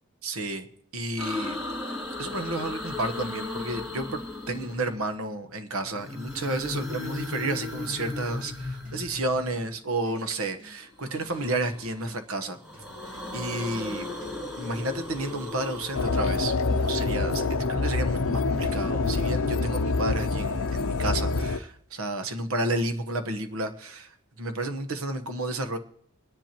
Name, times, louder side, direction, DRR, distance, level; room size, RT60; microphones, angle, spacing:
voice 1, 0.2-0.7 0.9-1.6 1.9-4.2 4.5-12.6 13.3-14.0 14.6-17.4 17.7-24.1 24.4-25.8, right 2 dB, 80° right, 9 dB, 1.2 m, -31 dB
sound 1, 1.2-5.1 5.9-9.6 11.0-12.1 12.5-17.5, left 2 dB, 15° right, 2.5 m, -36 dB
sound 2, 6.1-19.1, right 1 dB, 40° right, 2.6 m, -54 dB
sound 3, 15.9-21.6, left 3 dB, 75° left, 0.6 m, -26 dB
23.5 x 10.5 x 3.0 m, 0.67 s
head